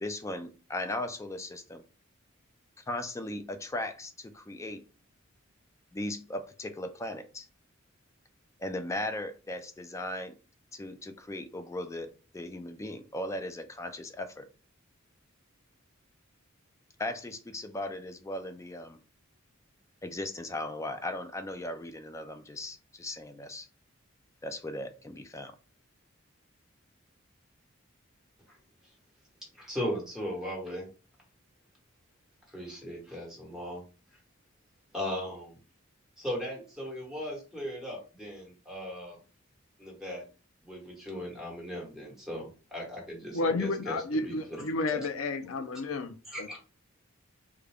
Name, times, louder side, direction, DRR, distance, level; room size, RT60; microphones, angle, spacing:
voice 1, 0.0-1.8 2.8-4.8 5.9-7.5 8.6-10.4 10.7-14.5 17.0-19.0 20.0-23.7 24.4-25.6, left 1 dB, 15° left, 9 dB, 0.3 m, -37 dB
voice 2, 29.5-30.9 32.5-33.8 34.9-35.6 36.2-39.2 39.8-40.2 40.6-44.4 44.9-45.1 46.3-46.6, equal, ahead, -3 dB, 1.2 m, -37 dB
voice 3, 43.3-46.6, left 3 dB, 90° left, 9 dB, 0.5 m, -31 dB
3.6 x 2.2 x 3.4 m, 0.34 s
head